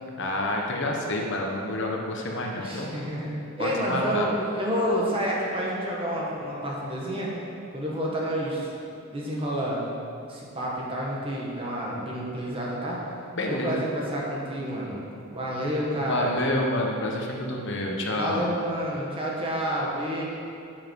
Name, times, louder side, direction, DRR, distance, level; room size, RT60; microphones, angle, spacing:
voice 1, 0.2-2.9 3.6-4.3 13.3-13.8 16.1-18.5, left 1 dB, 55° left, 0 dB, 1.2 m, -28 dB
voice 2, 2.6-7.3 7.7-8.7 9.1-9.8 10.3-13.0 13.5-16.4 18.1-20.2, equal, 25° right, -4 dB, 1.6 m, -29 dB
10.0 x 7.6 x 4.7 m, 2.5 s
head